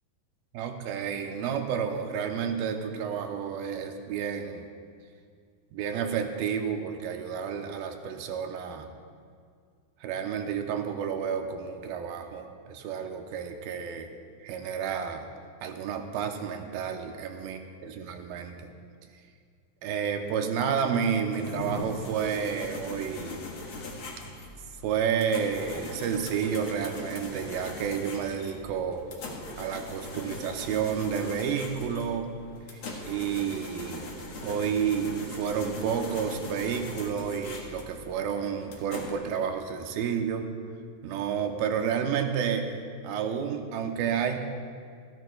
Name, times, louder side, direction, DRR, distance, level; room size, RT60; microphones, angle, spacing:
voice 1, 0.5-4.7 5.7-8.9 10.0-14.1 14.4-15.3 15.6-18.7 19.8-23.4 24.8-29.0 29.6-32.3 33.0-34.1 34.4-40.5 41.0-42.7 43.0-44.4, right 7 dB, 85° right, 5 dB, 2.6 m, -30 dB
sound 1, 21.3-39.1, left 2 dB, 50° left, 1.7 m, -40 dB
26.5 x 11.0 x 2.3 m, 2.1 s
omnidirectional pair, 4.2 m